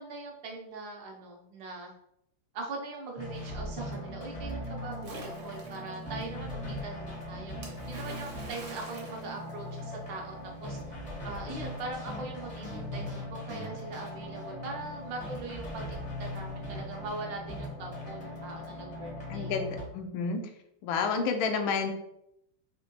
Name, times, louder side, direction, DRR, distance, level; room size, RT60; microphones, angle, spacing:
voice 1, 0.0-1.9 2.5-10.3 10.6-10.8 11.2-19.6, right 3 dB, 70° right, 0 dB, 1.3 m, -41 dB
sound 1, 3.2-19.8, left 1 dB, 45° left, 0.6 m, -39 dB
Splash splatter, 5.0-6.0 7.6-10.1, right 2 dB, 55° right, 0.9 m, -46 dB
voice 2, 19.3-20.4 20.8-21.9, left 5 dB, 80° left, 6 dB, 1.4 m, -30 dB
4.4 x 2.9 x 2.8 m, 0.77 s
omnidirectional pair, 2.3 m